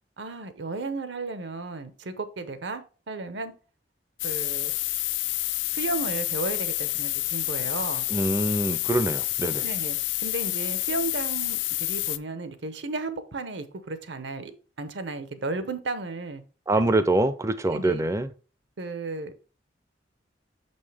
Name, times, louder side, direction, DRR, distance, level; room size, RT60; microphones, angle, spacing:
voice 1, 0.2-3.5 4.2-4.7 5.7-8.1 9.6-14.5 14.8-16.4 17.7-18.0 18.8-19.4, right 3 dB, 65° right, 0.8 m, -34 dB
sound 1, 4.2-12.2, left 18 dB, 70° left, 0.3 m, -28 dB
voice 2, 8.1-9.6 16.7-18.3, right 2 dB, 15° right, 0.4 m, -24 dB
6.3 x 5.4 x 3.3 m
head